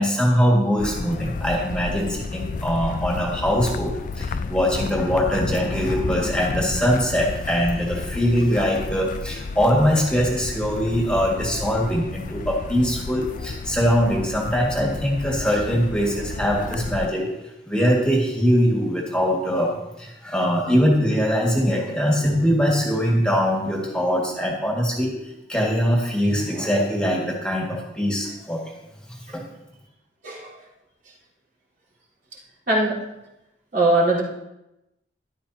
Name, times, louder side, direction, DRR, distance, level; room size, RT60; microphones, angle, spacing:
voice 1, 0.0-17.3 17.7-25.2 25.5-28.7 29.3-29.4, equal, 5° left, -3 dB, 1.9 m, -22 dB
sound 1, 0.8-17.1, left 4 dB, 45° left, 0.3 m, -32 dB
voice 2, 33.7-34.2, right 2 dB, 55° right, -6 dB, 3.9 m, -20 dB
14.0 x 11.5 x 2.8 m, 0.92 s
head